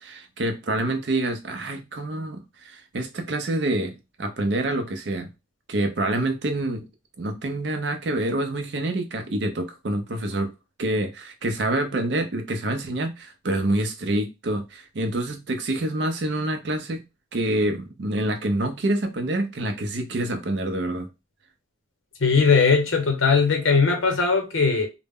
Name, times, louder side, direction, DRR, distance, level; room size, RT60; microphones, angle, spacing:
voice 1, 0.0-5.3 5.7-6.8 7.2-10.5 10.8-17.0 17.3-21.1, right 1 dB, 55° right, 0.5 m, -27 dB
voice 2, 22.2-24.9, left 5 dB, 80° left, 0.8 m, -19 dB
2.1 x 2.0 x 3.5 m
head